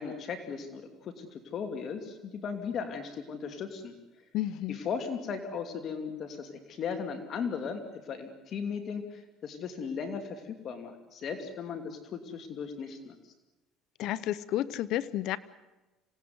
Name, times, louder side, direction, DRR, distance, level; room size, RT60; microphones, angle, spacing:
voice 1, 0.0-3.9 4.7-13.1, left 6 dB, 50° left, 6 dB, 2.8 m, -37 dB
voice 2, 4.3-4.8 14.0-15.4, left 13 dB, 65° left, 17 dB, 0.9 m, -31 dB
26.0 x 18.5 x 9.6 m, 1.1 s
cardioid pair, 110°, 0 cm